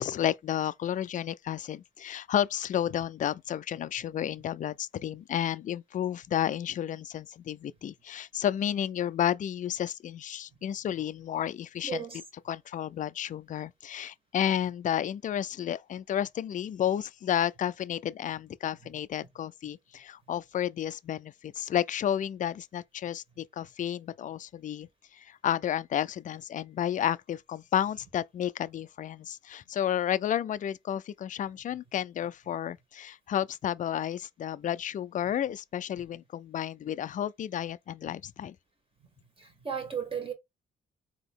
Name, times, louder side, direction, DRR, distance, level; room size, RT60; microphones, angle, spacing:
voice 1, 0.0-12.0 12.5-38.6, left 10 dB, 40° left, 0.4 m, -31 dB
voice 2, 11.8-12.2 39.4-40.3, right 7 dB, 25° right, 1.9 m, -35 dB
3.9 x 2.9 x 3.6 m
cardioid pair, 90°, 20 cm